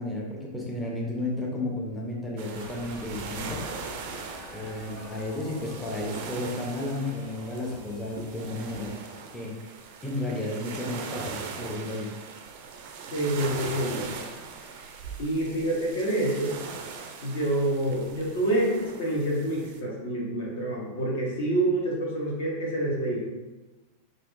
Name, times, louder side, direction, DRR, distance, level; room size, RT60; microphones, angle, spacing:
voice 1, 0.0-3.6 4.5-8.9 9.3-9.7 10.0-12.1, left 1 dB, 10° left, -3 dB, 0.6 m, -33 dB
sound 1, 2.4-19.8, right 5 dB, 50° right, 0.3 m, -40 dB
sound 2, 2.5-9.3, left 2 dB, 40° left, 1.5 m, -46 dB
voice 2, 13.1-14.1 15.2-16.5 17.2-23.2, right 1 dB, 60° left, -2 dB, 0.9 m, -27 dB
3.4 x 2.5 x 2.5 m, 1.1 s
figure-of-eight pair, 90°, 0 cm